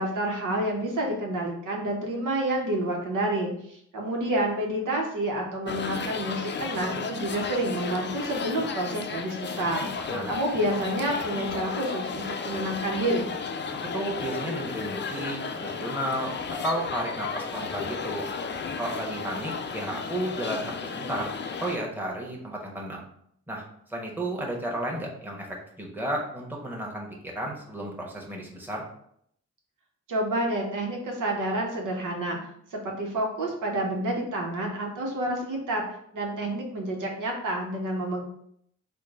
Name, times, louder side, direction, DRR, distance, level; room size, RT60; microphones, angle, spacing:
voice 1, 0.0-9.9 10.3-13.3 30.1-32.4 32.7-35.8 36.1-38.2, right 1 dB, 85° right, 0 dB, 0.9 m, -29 dB
sound 1, 5.7-21.8, left 5 dB, 35° left, 0.4 m, -33 dB
voice 2, 10.0-10.3 13.9-18.3 18.7-21.3 21.6-23.1 23.5-23.6 23.9-28.9, right 1 dB, 5° right, -2 dB, 1.1 m, -33 dB
3.7 x 2.2 x 3.6 m, 0.69 s
cardioid pair, 55°, 30 cm